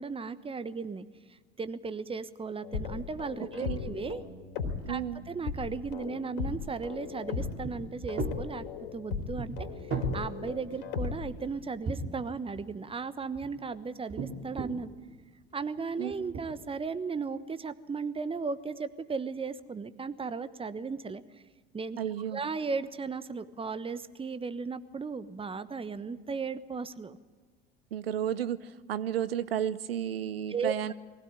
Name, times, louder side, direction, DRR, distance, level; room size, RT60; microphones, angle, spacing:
voice 1, 0.0-4.2 4.9-5.0 5.3-8.6 8.9-14.9 15.5-21.2 21.7-22.0 22.3-27.2 30.5-30.7, right 5 dB, 20° right, 13 dB, 1.2 m, -36 dB
sound 1, 2.6-11.6, left 5 dB, 70° left, 3.4 m, -37 dB
voice 2, 4.9-5.2 16.0-16.3 22.0-22.4 27.9-30.9, right 10 dB, 85° right, 17 dB, 0.7 m, -32 dB
sound 2, 7.6-7.7 8.0-8.3 9.4-10.1 11.9-12.6 13.2-13.5 14.1-14.9 15.6-15.8 16.1-16.4, right 4 dB, 40° right, 4.0 m, -35 dB
23.0 x 16.5 x 9.8 m, 1.5 s
hypercardioid pair, 65°, 29 cm